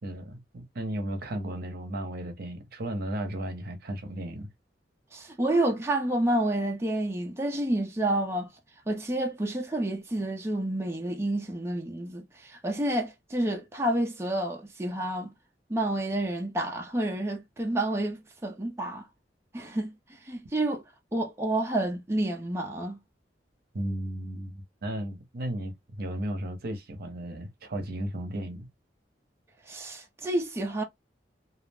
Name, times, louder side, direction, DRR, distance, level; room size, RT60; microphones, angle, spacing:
voice 1, 0.0-4.5 23.7-28.7, right 1 dB, 60° right, 0.7 m, -35 dB
voice 2, 5.1-8.5 8.9-15.3 15.7-19.1 19.5-19.9 20.2-20.8 21.1-23.0 29.7-30.8, right 1 dB, 15° right, 0.5 m, -29 dB
2.3 x 2.0 x 3.3 m
head